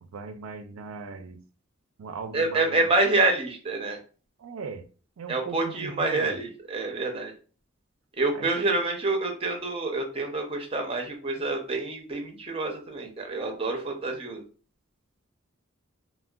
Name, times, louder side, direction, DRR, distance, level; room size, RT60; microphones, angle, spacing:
voice 1, 0.0-1.4 2.0-2.9 4.4-4.9 5.2-6.4 8.3-8.5, right 4 dB, 80° right, 0.4 m, -39 dB
voice 2, 2.3-4.0 5.3-7.3 8.2-14.4, right 2 dB, 25° right, 0.5 m, -27 dB
3.4 x 2.1 x 2.2 m
head